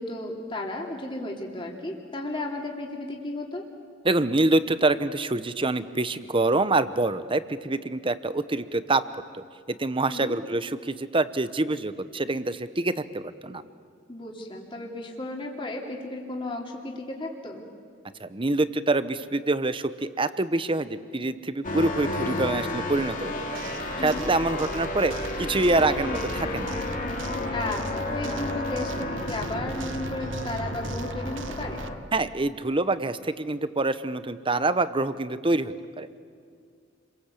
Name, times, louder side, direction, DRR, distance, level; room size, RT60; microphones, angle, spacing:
voice 1, 0.0-3.6 10.1-10.3 14.1-17.6 24.0-24.3 27.5-31.9, left 2 dB, 25° left, 0 dB, 3.0 m, -34 dB
voice 2, 4.0-9.0 9.3-9.4 9.8-13.6 18.2-23.3 24.0-26.8 32.1-36.2, right 2 dB, 25° right, 13 dB, 0.9 m, -26 dB
sound 1, 21.6-32.0, left 2 dB, 45° left, 2.8 m, -32 dB
sound 2, 23.5-31.9, right 4 dB, 70° right, 0.9 m, -40 dB
29.5 x 23.0 x 8.5 m, 2.2 s
head